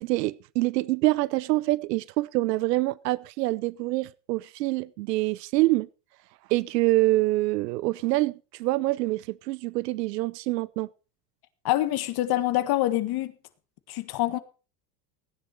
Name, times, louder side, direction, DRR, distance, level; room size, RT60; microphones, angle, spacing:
voice 1, 0.0-5.9 6.5-10.9, right 19 dB, 80° right, 0.7 m, -26 dB
voice 2, 11.6-13.3 13.9-14.4, left 15 dB, 50° left, 1.6 m, -25 dB
15.5 x 10.0 x 4.3 m
hypercardioid pair, 95°, 48 cm